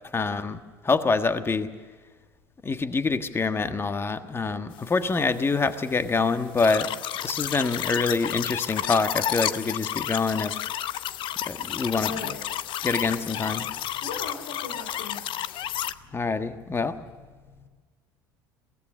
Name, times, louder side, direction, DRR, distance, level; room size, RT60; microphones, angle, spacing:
voice 1, 0.1-1.7 2.6-6.9 7.2-10.6 11.5-12.3 12.8-13.7 16.1-17.0, left 4 dB, 20° left, 10 dB, 1.5 m, -26 dB
sound 1, 6.6-15.9, left 12 dB, 45° left, 0.8 m, -31 dB
voice 2, 11.7-12.4 13.0-13.6 14.0-15.2 15.6-15.8 17.5-17.7, left 4 dB, 70° left, 3 dB, 3.2 m, -40 dB
23.0 x 17.0 x 6.7 m, 1.5 s
figure-of-eight pair, 65°, 11 cm